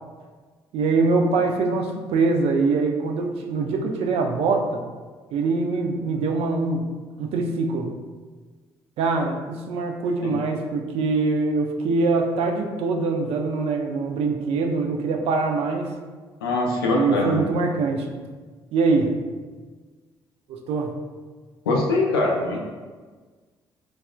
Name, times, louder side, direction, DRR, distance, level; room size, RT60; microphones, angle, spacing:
voice 1, 0.7-4.8 5.3-6.9 7.2-7.9 9.0-15.9 16.9-18.1 18.7-19.1 20.5-20.9, right 3 dB, 55° right, 3 dB, 0.4 m, -23 dB
voice 2, 16.4-17.4 21.7-22.6, left 2 dB, 80° left, -2 dB, 0.4 m, -22 dB
3.2 x 2.0 x 2.4 m, 1.4 s
figure-of-eight pair, 45°, 12 cm